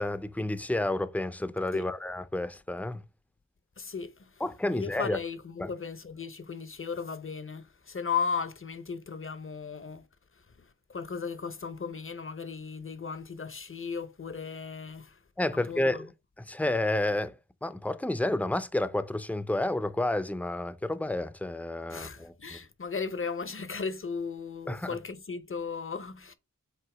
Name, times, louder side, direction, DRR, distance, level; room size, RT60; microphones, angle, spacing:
voice 1, 0.0-3.0 4.4-5.2 5.6-5.7 15.4-16.1 16.5-17.3 17.6-22.6 24.7-25.0, left 1 dB, 5° left, 0.6 m, -30 dB
voice 2, 3.8-4.4 4.7-10.0 10.3-15.2 15.5-16.1 21.9-26.3, left 5 dB, 40° left, 0.8 m, -36 dB
7.9 x 2.7 x 4.9 m
wide cardioid pair, 80°, 33 cm